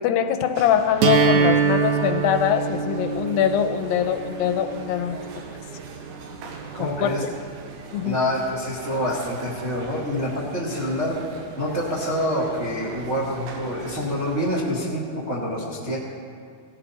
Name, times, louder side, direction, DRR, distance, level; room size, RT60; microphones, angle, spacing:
voice 1, 0.0-5.2 6.8-7.3 7.9-8.2, left 9 dB, 85° left, 8 dB, 2.4 m, -23 dB
sound 1, 0.5-14.7, right 4 dB, 90° right, 3.1 m, -41 dB
sound 2, 1.0-7.0, right 5 dB, 75° right, 1.8 m, -25 dB
voice 2, 6.7-7.2 8.0-11.2 11.6-16.0, equal, 35° right, -4 dB, 1.0 m, -26 dB
17.5 x 14.0 x 4.1 m, 2.2 s
omnidirectional pair, 4.2 m